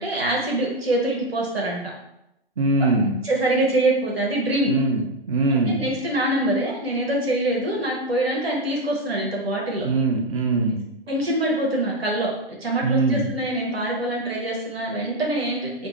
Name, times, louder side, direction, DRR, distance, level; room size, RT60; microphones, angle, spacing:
voice 1, 0.0-1.8 3.2-4.7 5.7-9.9 11.1-12.3 12.6-15.9, right 1 dB, 80° right, -2 dB, 1.0 m, -24 dB
voice 2, 2.6-3.1 4.7-5.0 5.3-6.0 9.7-10.8 12.8-13.3, right 3 dB, 35° right, 3 dB, 0.4 m, -22 dB
2.6 x 2.5 x 3.8 m, 0.86 s
figure-of-eight pair, 130°, 30 cm